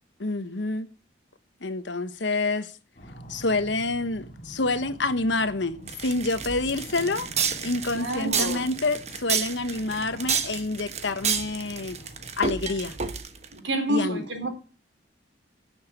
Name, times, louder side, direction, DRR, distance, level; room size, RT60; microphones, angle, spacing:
voice 1, 0.2-0.9 1.6-2.7 3.3-7.3 7.6-12.0 12.4-13.0 13.9-14.2, left 2 dB, 80° left, 1.2 m, -27 dB
sound 1, 3.0-13.2, equal, 45° left, 2.5 m, -46 dB
sound 2, 5.9-13.5, right 7 dB, 35° right, 1.2 m, -30 dB
voice 2, 7.9-8.6 13.5-14.5, right 1 dB, 90° right, 3.8 m, -28 dB
12.0 x 7.3 x 9.1 m
head